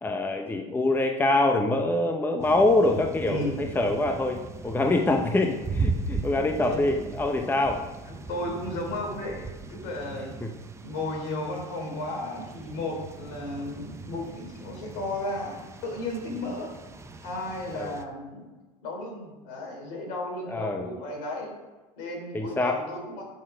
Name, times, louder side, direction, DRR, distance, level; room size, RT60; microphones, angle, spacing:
voice 1, 0.0-7.8 10.4-10.5 16.4-16.5 17.7-18.0 20.5-20.9 22.3-22.8, left 2 dB, 10° left, 4 dB, 0.8 m, -25 dB
sound 1, 2.4-18.0, right 3 dB, 15° right, 0.9 m, -38 dB
voice 2, 3.3-3.6 6.6-6.9 8.1-10.3 10.8-16.7 17.2-18.5 18.8-21.5 22.0-23.2, left 2 dB, 70° left, 1 dB, 3.8 m, -34 dB
12.5 x 6.7 x 5.1 m, 1.2 s
supercardioid pair, 105°, 17 cm